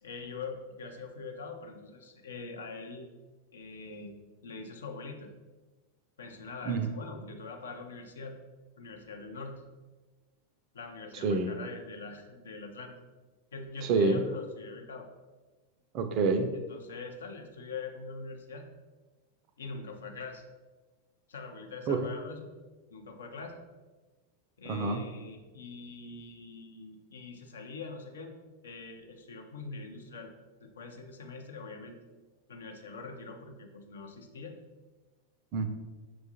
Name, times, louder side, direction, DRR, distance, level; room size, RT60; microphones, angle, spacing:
voice 1, 0.0-3.1 3.5-4.2 4.4-5.3 6.2-8.3 8.8-9.6 10.7-12.9 13.5-15.1 16.5-18.7 19.6-20.4 21.3-22.5 22.9-23.6 24.6-28.3 28.6-30.3 30.6-32.0 32.5-34.5, left 4 dB, 65° left, 3 dB, 0.5 m, -43 dB
voice 2, 13.8-14.2 15.9-16.5 21.9-22.0 24.7-25.0 35.5-35.7, right 4 dB, 40° right, 7 dB, 0.4 m, -27 dB
6.0 x 2.3 x 2.8 m, 1.3 s
figure-of-eight pair, 90°, 0 cm